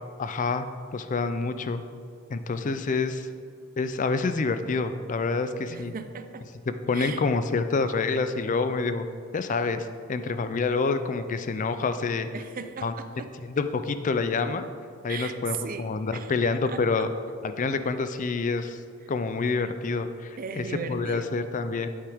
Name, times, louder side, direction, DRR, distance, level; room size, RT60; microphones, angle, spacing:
voice 1, 0.2-0.7 0.9-1.8 2.3-3.3 3.8-5.9 6.9-9.1 9.3-12.3 12.8-12.9 13.5-14.6 15.0-17.1 17.4-18.8 19.1-21.9, left 4 dB, 35° left, 10 dB, 0.4 m, -27 dB
voice 2, 5.7-6.5 6.9-7.2 12.3-13.3 15.1-16.4 16.6-17.1 19.0-19.1 20.4-21.3, right 5 dB, 40° right, 9 dB, 0.5 m, -37 dB
8.7 x 8.3 x 3.5 m, 2.4 s
head